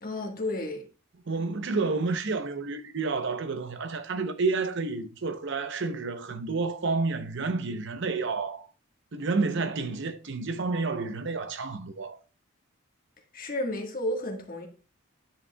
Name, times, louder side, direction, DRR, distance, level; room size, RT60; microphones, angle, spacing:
voice 1, 0.0-0.8 13.3-14.7, left 1 dB, 40° left, 1.4 m, -32 dB
voice 2, 1.3-8.7 9.1-12.2, right 3 dB, 55° right, 0.7 m, -30 dB
9.7 x 6.0 x 2.2 m
head